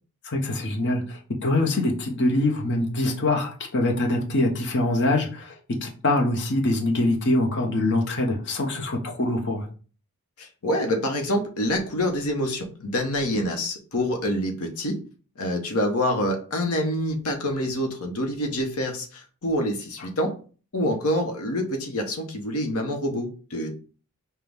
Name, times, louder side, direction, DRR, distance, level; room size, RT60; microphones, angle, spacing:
voice 1, 0.2-9.7, left 1 dB, 55° left, 1 dB, 0.9 m, -24 dB
voice 2, 10.4-15.0 15.4-20.3 20.7-23.7, left 1 dB, 85° left, 3 dB, 0.9 m, -26 dB
6.0 x 2.2 x 3.5 m, 0.39 s
head